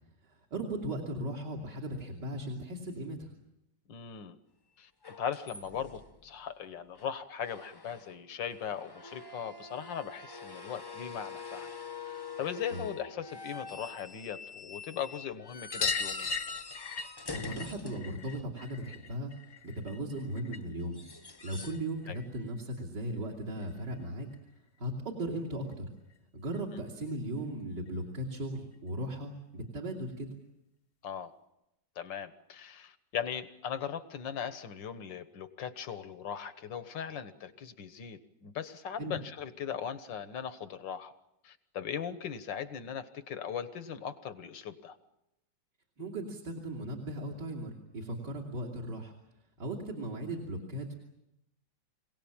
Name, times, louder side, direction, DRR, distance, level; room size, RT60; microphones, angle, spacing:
voice 1, 0.2-3.3 12.7-12.8 17.3-19.3 19.6-21.0 21.4-24.3 24.8-25.9 26.3-30.3 39.0-39.2 46.0-49.1 49.6-50.9, right 1 dB, 65° right, -1 dB, 3.3 m, -37 dB
voice 2, 3.9-4.4 4.8-4.9 5.2-11.7 12.0-16.3 22.1-22.2 26.7-26.8 31.0-31.3 32.0-41.1 41.4-45.0, left 8 dB, 85° left, 11 dB, 2.0 m, -39 dB
sound 1, 5.0-6.3 7.0-7.1 7.4-8.2 8.5-18.8 20.8-21.9 22.1-22.5 24.3-24.4, left 4 dB, 20° left, 0.6 m, -45 dB
sound 2, 15.7-20.8 21.1-22.3 23.6-23.7 23.9-24.0 24.3-24.4 25.7-25.8 26.1-26.2 26.5-26.6 27.9-28.0 28.7-28.8, left 5 dB, 40° left, 1.0 m, -38 dB
26.5 x 18.0 x 8.9 m, 0.88 s
omnidirectional pair, 1.9 m